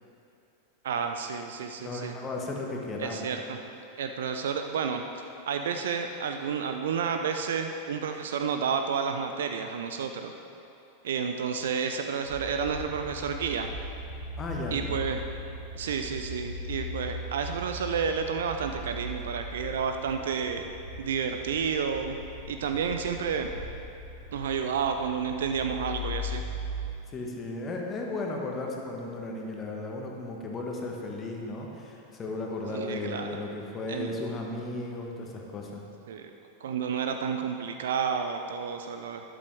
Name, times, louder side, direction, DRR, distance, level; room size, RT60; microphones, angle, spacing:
voice 1, 0.8-2.2 3.0-3.6 4.0-10.3 11.0-13.7 14.7-15.2 15.7-20.6 21.0-22.2 22.5-23.5 24.3-26.4 32.7-33.4 33.9-34.2 36.1-36.3 36.6-39.2, right 6 dB, 60° right, 6 dB, 0.5 m, -30 dB
voice 2, 1.8-3.2 14.4-14.8 27.1-35.8, left 2 dB, 25° left, 0 dB, 1.6 m, -35 dB
Interior car windows rolled up, 12.2-26.9, left 1 dB, 80° left, 2.9 m, -39 dB
12.5 x 11.0 x 3.4 m, 2.7 s
figure-of-eight pair, 90°, 0 cm